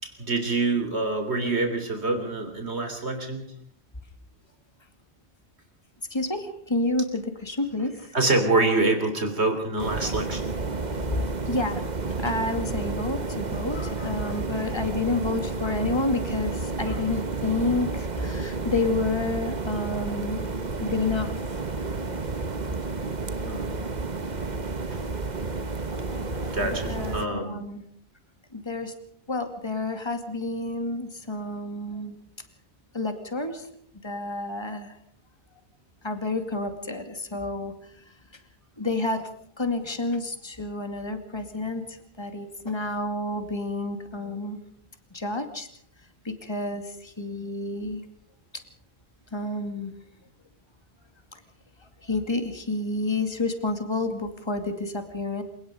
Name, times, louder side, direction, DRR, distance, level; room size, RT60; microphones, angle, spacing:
voice 1, 0.0-3.5 8.1-10.4 23.4-23.7 24.9-25.0 26.5-27.6, right 2 dB, 80° right, 5 dB, 3.6 m, -26 dB
voice 2, 6.1-8.2 11.5-11.8 12.2-20.5 20.8-21.6 23.8-23.9 25.9-27.8 28.5-28.9 29.3-32.2 32.9-33.7 34.0-35.0 36.0-37.7 38.8-39.3 39.6-44.6 45.1-45.7 46.2-48.0 49.3-49.9 51.3-51.4 52.0-55.4, left 2 dB, 25° left, 7 dB, 2.4 m, -30 dB
sound 1, 9.8-27.3, right 3 dB, 40° right, 1.4 m, -31 dB
28.0 x 18.5 x 5.2 m, 0.62 s
omnidirectional pair, 1.1 m